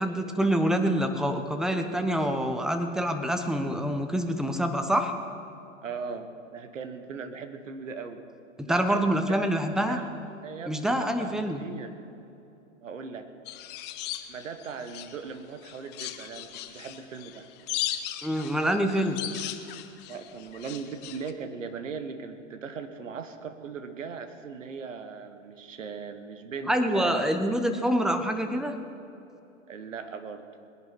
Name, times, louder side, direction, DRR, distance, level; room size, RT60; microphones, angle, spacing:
voice 1, 0.0-5.1 8.6-10.0 10.7-11.6 18.2-19.2 26.7-28.8, equal, ahead, 6 dB, 0.9 m, -26 dB
voice 2, 5.8-8.2 8.7-9.5 9.9-10.1 10.4-11.9 12.8-13.3 14.3-17.5 20.1-27.3 29.7-30.5, right 5 dB, 75° right, 8 dB, 1.6 m, -39 dB
sound 1, 13.5-15.3 15.6-21.3, left 12 dB, 25° left, 0.8 m, -37 dB
21.0 x 10.5 x 4.6 m, 2.8 s
hypercardioid pair, 110°, 39 cm